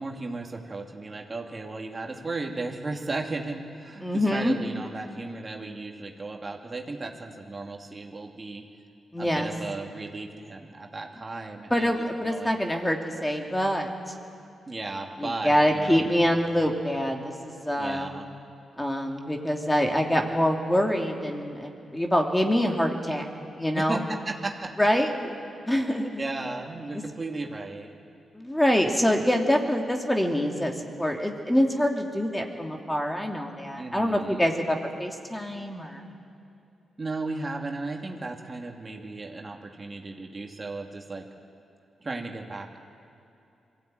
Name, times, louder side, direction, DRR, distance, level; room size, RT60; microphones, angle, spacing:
voice 1, 0.0-8.6 9.2-11.9 12.2-12.5 14.7-16.1 17.8-18.3 23.7-24.7 26.0-27.9 33.8-34.4 37.0-41.3 42.0-42.8, right 2 dB, 35° right, 2 dB, 2.5 m, -35 dB
voice 2, 4.0-4.6 9.1-9.5 11.7-13.9 15.2-18.1 18.8-23.2 23.6-24.0 24.8-25.1 25.7-26.2 26.9-27.0 28.3-36.0, equal, 10° left, 2 dB, 2.7 m, -25 dB
22.5 x 16.0 x 9.1 m, 2.7 s
supercardioid pair, 50°, 0 cm